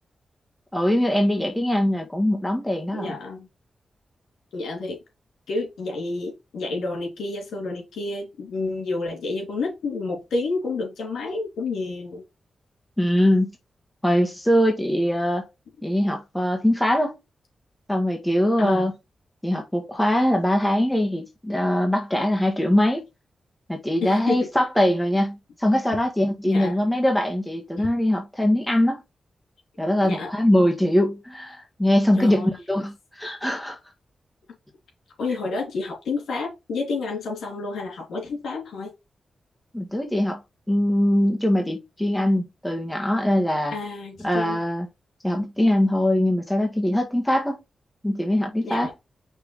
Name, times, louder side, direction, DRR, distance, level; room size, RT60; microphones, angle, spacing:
voice 1, 0.7-3.1 13.0-13.6 14.0-15.5 15.8-17.2 17.9-18.9 19.4-23.0 23.7-29.0 29.8-33.8 39.7-40.4 40.7-43.7 44.2-44.9 45.2-47.6 48.0-48.9, left 1 dB, 10° left, 1.8 m, -22 dB
voice 2, 2.9-3.5 4.5-5.0 5.5-12.2 18.6-18.9 24.0-24.5 26.4-26.8 27.8-27.9 30.0-30.3 32.2-32.6 35.2-38.9 43.7-44.6 48.6-48.9, left 3 dB, 85° left, 3.3 m, -29 dB
6.0 x 3.4 x 4.7 m
supercardioid pair, 45°, 0 cm